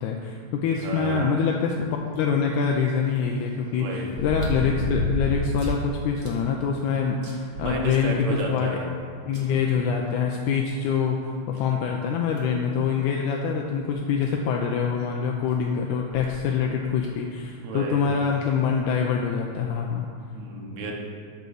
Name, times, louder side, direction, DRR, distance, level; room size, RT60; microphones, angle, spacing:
voice 1, 0.0-8.2 8.5-8.7 9.3-20.0, left 6 dB, 80° left, 1 dB, 2.0 m, -25 dB
voice 2, 0.7-1.5 3.7-4.1 7.6-9.0 9.3-9.7 17.6-18.1 20.3-21.0, right 2 dB, 65° right, -1 dB, 2.3 m, -32 dB
sound 1, 2.2-2.3 4.1-5.8 6.2-6.3 6.8-6.9 7.2-8.3 9.3-9.4 10.9-11.0 11.5-11.6 12.4-12.6 13.9-14.0 14.2-14.3 16.0-16.3 17.0-17.1, left 1 dB, 50° right, 1.6 m, -30 dB
9.0 x 4.0 x 6.5 m, 2.3 s
omnidirectional pair, 3.6 m